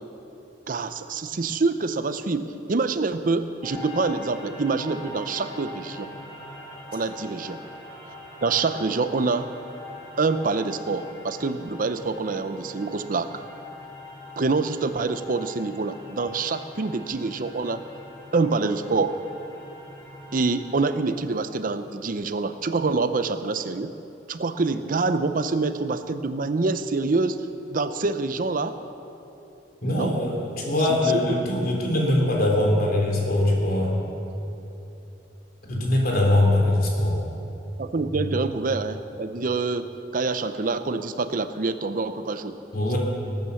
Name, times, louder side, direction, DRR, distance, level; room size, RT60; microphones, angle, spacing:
voice 1, 0.7-6.1 6.9-7.6 8.4-9.5 10.2-13.3 14.4-17.8 18.3-19.1 20.3-23.9 24.3-27.4 27.7-28.8 29.9-30.1 37.8-39.9 40.1-42.6 42.9-43.0, right 3 dB, 50° right, 11 dB, 0.6 m, -26 dB
sound 1, 3.6-20.9, left 2 dB, 20° left, 3.9 m, -42 dB
voice 2, 29.8-34.0 35.7-37.2 38.1-38.2 42.7-43.0, left 1 dB, 55° left, -1 dB, 3.3 m, -22 dB
19.5 x 9.3 x 7.0 m, 3.0 s
head